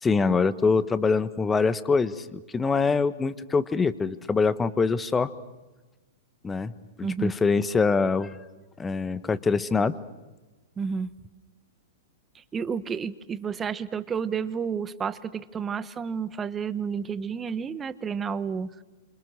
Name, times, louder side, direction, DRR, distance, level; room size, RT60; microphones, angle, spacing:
voice 1, 0.0-5.3 6.4-6.7 7.0-8.4 8.8-10.0, left 4 dB, 15° left, 15 dB, 1.3 m, -24 dB
voice 2, 7.0-7.3 10.8-11.1 12.3-18.8, right 6 dB, 20° right, 16 dB, 1.2 m, -31 dB
28.0 x 26.5 x 6.6 m, 1.1 s
hypercardioid pair, 115°, 0 cm